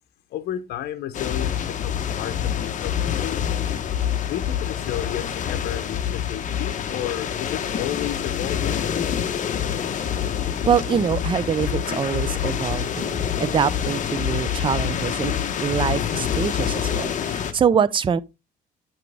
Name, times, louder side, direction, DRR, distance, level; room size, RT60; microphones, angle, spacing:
voice 1, 0.3-3.6 4.3-9.0, left 11 dB, 75° left, 0.9 m, -32 dB
sound 1, 1.1-17.5, left 9 dB, 50° left, 1.1 m, -26 dB
voice 2, 10.7-15.3 15.6-18.2, right 7 dB, 30° right, 0.6 m, -24 dB
8.8 x 6.0 x 3.5 m
cardioid pair, 110°, 17 cm